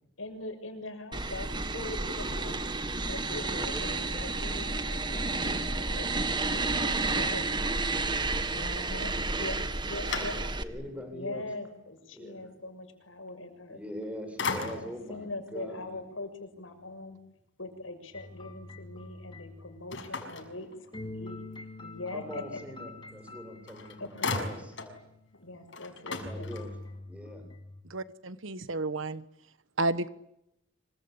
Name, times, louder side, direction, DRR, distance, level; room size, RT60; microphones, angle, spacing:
voice 1, 0.2-2.6 3.1-7.5 8.5-9.6 9.9-10.4 11.1-13.8 14.5-17.2 17.6-20.7 21.0-22.6 24.0-24.4 25.3-26.5, left 2 dB, 85° left, 7 dB, 6.7 m, -42 dB
sound 1, 1.1-10.6, right 3 dB, 25° right, 1.8 m, -31 dB
voice 2, 3.5-4.3 10.6-11.5 12.1-12.5 13.7-16.0 22.1-24.7 26.0-26.7 27.1-27.5, equal, 5° right, 6 dB, 7.9 m, -42 dB
sound 2, 9.4-10.9 11.4-11.5 13.7-14.0 14.4-15.1 19.9-21.2 23.3-23.4 23.7-25.0 25.3-25.4 25.7-27.0, left 4 dB, 65° left, 6.1 m, -37 dB
sound 3, 18.1-20.3 20.9-25.3 26.1-27.8, left 2 dB, 25° left, 3.3 m, -45 dB
voice 3, 27.9-29.2 29.8-30.1, right 2 dB, 75° right, 14 dB, 1.3 m, -31 dB
27.0 x 24.0 x 8.8 m, 0.80 s
head